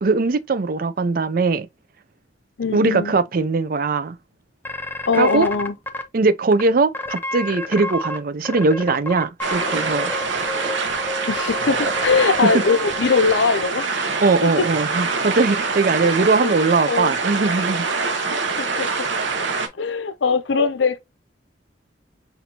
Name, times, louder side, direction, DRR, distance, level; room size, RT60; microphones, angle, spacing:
voice 1, 0.0-1.7 2.7-4.2 5.2-5.5 6.1-10.1 14.2-17.8, right 3 dB, 50° right, 0.5 m, -20 dB
voice 2, 2.6-3.2 5.1-5.7 11.3-14.1 14.4-14.7 16.4-16.6 16.9-17.1 18.2-19.1 19.8-21.0, left 5 dB, 80° left, 0.6 m, -21 dB
sound 1, 4.7-6.0 6.5-6.6 6.9-8.2 8.5-13.7, left 1 dB, 10° left, 0.5 m, -30 dB
sound 2, 9.4-19.7, right 4 dB, 85° right, 1.0 m, -25 dB
6.0 x 2.6 x 2.8 m
head